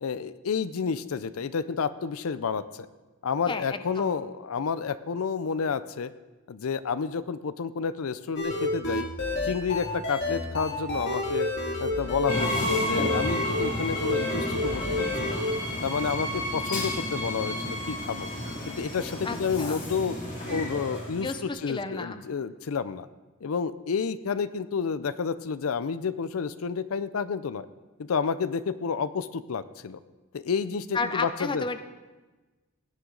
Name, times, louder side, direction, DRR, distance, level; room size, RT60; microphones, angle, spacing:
voice 1, 0.0-2.9 3.2-6.1 6.5-9.1 9.4-11.5 11.8-15.4 15.8-18.3 18.7-20.1 20.5-21.3 21.6-23.1 23.4-27.7 28.0-30.0 30.3-31.7, left 6 dB, 85° left, 15 dB, 0.5 m, -30 dB
voice 2, 3.5-4.1 19.2-19.8 21.2-22.2 30.9-31.8, left 3 dB, 20° left, 9 dB, 0.5 m, -32 dB
sound 1, 8.4-15.5, left 2 dB, 55° left, 2.0 m, -30 dB
Train, 12.3-21.5, left 1 dB, 35° left, 2.6 m, -32 dB
17.5 x 9.9 x 3.9 m, 1.2 s
head